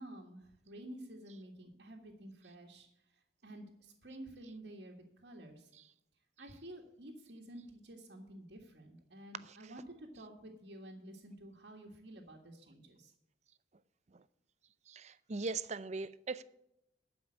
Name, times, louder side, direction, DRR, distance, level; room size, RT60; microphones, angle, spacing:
voice 1, 0.0-2.9 3.4-5.7 6.4-13.1, right 1 dB, 65° right, 1.7 m, -51 dB
voice 2, 14.9-16.4, right 4 dB, 35° right, 0.5 m, -39 dB
12.0 x 5.4 x 8.6 m
head